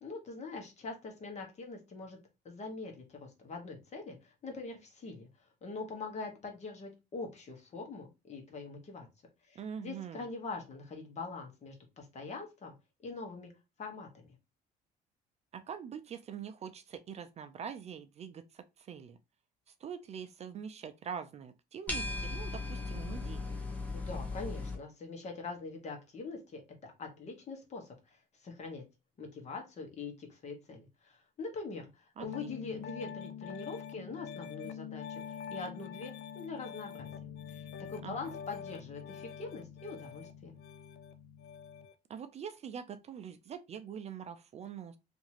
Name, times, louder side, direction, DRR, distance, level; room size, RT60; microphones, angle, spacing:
voice 1, 0.0-2.2 2.4-5.3 5.6-9.1 9.5-12.7 13.0-13.5 13.8-14.3 23.9-28.8 29.2-37.1 37.5-40.6, left 3 dB, 40° left, 1.1 m, -43 dB
voice 2, 9.5-10.3 15.5-19.2 19.7-23.5 32.2-32.5 38.0-38.3 42.1-45.0, right 7 dB, 40° right, 0.4 m, -44 dB
sound 1, 21.9-24.7, left 3 dB, 10° left, 0.9 m, -37 dB
Piano, 32.2-41.9, left 8 dB, 80° left, 0.4 m, -45 dB
2.8 x 2.6 x 2.8 m
cardioid pair, 110°, 17 cm